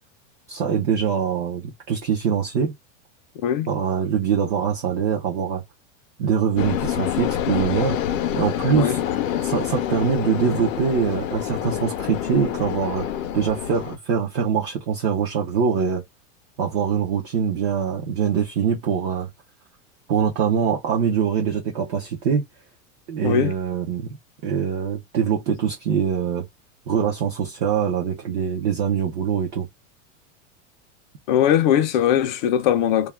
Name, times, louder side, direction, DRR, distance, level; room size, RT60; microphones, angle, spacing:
voice 1, 0.5-2.7 3.7-5.6 6.2-8.0 8.3-9.0 9.4-13.1 13.3-16.0 16.6-19.3 20.1-22.4 23.1-24.2 24.4-26.5 26.9-29.7, right 7 dB, 25° right, 0.4 m, -23 dB
sound 1, 6.6-14.0, left 10 dB, 85° left, 0.6 m, -27 dB
voice 2, 31.3-33.1, left 10 dB, 40° left, 0.4 m, -20 dB
2.3 x 2.1 x 3.1 m
supercardioid pair, 165°, 38 cm